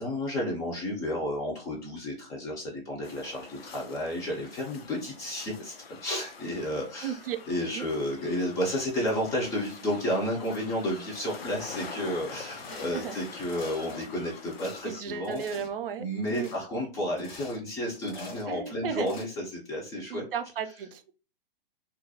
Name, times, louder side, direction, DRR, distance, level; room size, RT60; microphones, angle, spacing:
voice 1, 0.0-5.7 6.0-7.2 7.5-15.4 16.0-20.3, left 1 dB, 10° left, -2 dB, 0.3 m, -32 dB
sound 1, 3.0-15.0, left 5 dB, 85° left, 0.5 m, -45 dB
voice 2, 7.0-7.4 7.7-7.9 12.7-13.2 14.8-16.5 18.5-19.1 20.1-21.1, right 8 dB, 70° right, 8 dB, 0.4 m, -35 dB
sound 2, 12.5-13.1 13.4-14.0 14.4-14.8 15.2-15.8 16.2-16.6 17.1-17.6 17.9-18.5 19.0-19.2, left 3 dB, 55° left, 0.7 m, -45 dB
2.3 x 2.0 x 2.6 m, 0.35 s
figure-of-eight pair, 115°, 29 cm